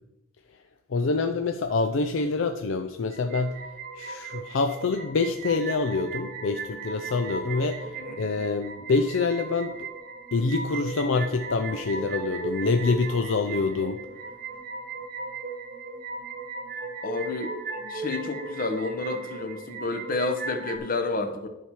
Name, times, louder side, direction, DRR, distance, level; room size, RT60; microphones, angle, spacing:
voice 1, 0.9-3.6 4.0-7.9 8.2-9.7 10.3-14.0, left 3 dB, 70° left, 7 dB, 0.5 m, -26 dB
sound 1, 3.1-20.8, right 4 dB, 45° right, 1.1 m, -37 dB
voice 2, 17.0-17.6 17.9-21.5, left 3 dB, 45° left, 7 dB, 0.9 m, -30 dB
10.0 x 5.7 x 4.7 m, 0.93 s
head